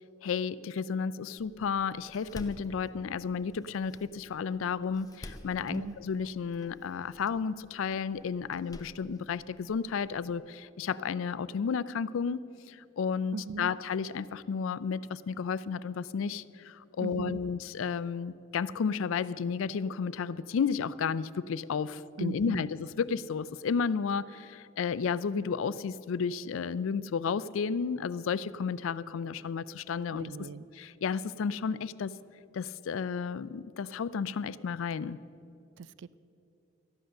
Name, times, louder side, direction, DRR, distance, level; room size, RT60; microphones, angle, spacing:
voice 1, 0.2-12.4 12.7-30.5 30.7-32.1 32.5-35.2, left 6 dB, 70° left, 17 dB, 0.4 m, -32 dB
Door, 1.4-10.4, left 1 dB, 15° left, 0.5 m, -52 dB
voice 2, 13.3-13.7 17.0-17.4 22.2-22.7 30.1-30.6 35.8-36.2, right 5 dB, 55° right, 18 dB, 0.3 m, -38 dB
13.5 x 10.5 x 6.5 m, 2.7 s
head